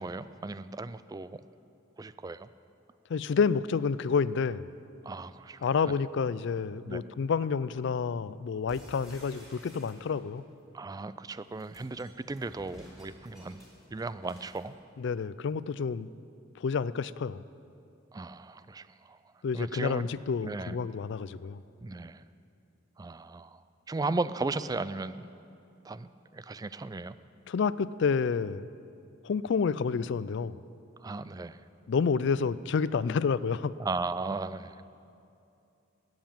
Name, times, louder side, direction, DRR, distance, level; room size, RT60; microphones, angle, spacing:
voice 1, 0.0-1.4 2.0-2.5 5.0-5.9 6.8-7.0 10.7-13.6 13.9-14.7 18.1-19.2 19.5-20.1 20.4-20.8 21.8-22.2 23.0-25.3 25.8-27.2 31.0-31.6 33.8-34.8, right 3 dB, 20° right, 14 dB, 0.3 m, -36 dB
voice 2, 3.1-4.7 5.6-10.4 15.0-16.1 16.6-17.4 19.4-21.6 27.5-28.7 29.2-30.6 31.9-33.7, left 5 dB, 60° left, 17 dB, 0.4 m, -29 dB
sound 1, 8.7-10.4 11.4-14.7, equal, ahead, 3.6 m, -53 dB
13.5 x 9.3 x 8.8 m, 2.6 s
head